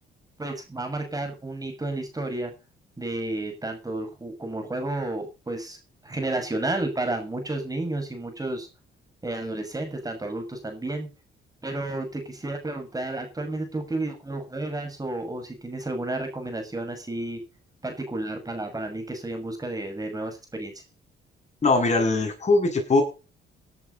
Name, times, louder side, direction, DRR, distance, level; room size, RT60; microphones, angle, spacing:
voice 1, 0.4-2.5 3.0-5.8 6.0-8.7 9.2-11.1 11.6-17.4 17.8-20.7, right 2 dB, 20° right, 5 dB, 6.4 m, -31 dB
voice 2, 21.6-23.0, left 3 dB, 35° left, 2 dB, 7.8 m, -21 dB
17.5 x 11.0 x 4.0 m, 0.32 s
cardioid pair, 90°, 20 cm